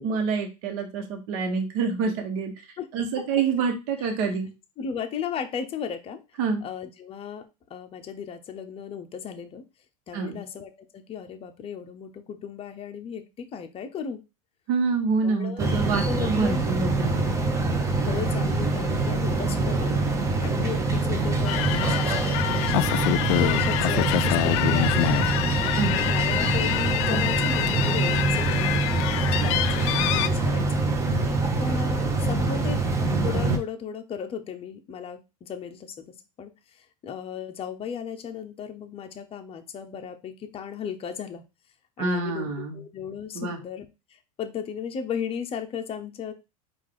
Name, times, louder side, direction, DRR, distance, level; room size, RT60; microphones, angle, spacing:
voice 1, 0.0-2.5 2.9-4.5 6.4-6.6 10.1-10.4 14.7-17.3 25.7-26.0 30.0-30.1 42.0-42.8 43.3-43.6, right 4 dB, 60° right, 4 dB, 1.1 m, -27 dB
voice 2, 4.8-6.2 6.6-7.4 7.7-9.6 10.1-14.2 15.2-15.7 16.1-16.7 17.6-25.1 25.6-29.1 29.4-30.7 31.6-32.8 33.2-36.1 36.4-41.4 42.0-46.3, left 7 dB, 30° left, 7 dB, 0.7 m, -36 dB
sound 1, 15.6-33.6, right 3 dB, 15° right, 0.9 m, -25 dB
sound 2, 21.4-30.3, left 16 dB, 55° left, 0.4 m, -26 dB
4.6 x 2.5 x 3.8 m, 0.27 s
hypercardioid pair, 100°, 19 cm